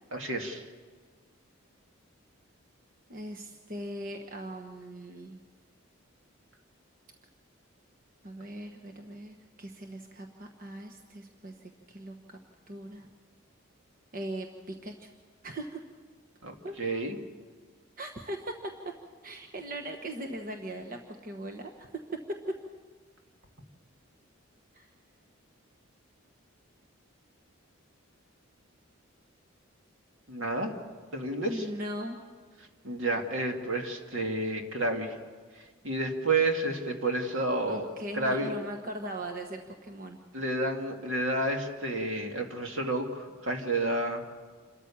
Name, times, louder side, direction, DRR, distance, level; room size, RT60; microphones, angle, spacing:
voice 1, 0.1-0.6 16.4-17.1 30.3-30.7 31.1-31.7 32.8-35.2 35.8-37.9 38.1-38.5 40.3-44.2, right 2 dB, 70° right, 3 dB, 2.3 m, -30 dB
voice 2, 3.1-5.4 8.2-12.4 12.7-13.1 14.1-15.1 15.4-15.8 16.6-16.7 18.0-18.5 19.2-21.9 24.7-24.9 31.4-32.2 37.7-40.2, right 1 dB, 40° right, 3 dB, 1.2 m, -40 dB
28.0 x 13.5 x 7.2 m, 1.5 s
head